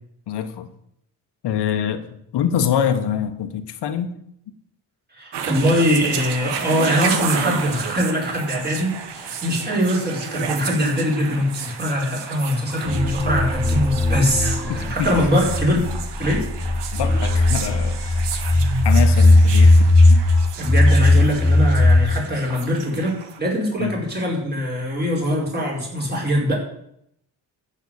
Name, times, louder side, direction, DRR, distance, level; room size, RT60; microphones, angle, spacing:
voice 1, 0.3-0.7 1.4-4.1 14.7-15.1 16.9-18.0 18.8-20.2 23.8-23.9, left 8 dB, 75° left, 7 dB, 1.4 m, -25 dB
voice 2, 5.1-15.9 16.2-16.5 20.6-26.6, equal, 25° right, -3 dB, 5.2 m, -22 dB
sound 1, 5.3-23.4, right 6 dB, 85° right, 1.8 m, -31 dB
sound 2, 12.9-22.0, left 2 dB, 5° right, 4.4 m, -17 dB
14.5 x 5.8 x 8.2 m, 0.74 s
cardioid pair, 130°, 41 cm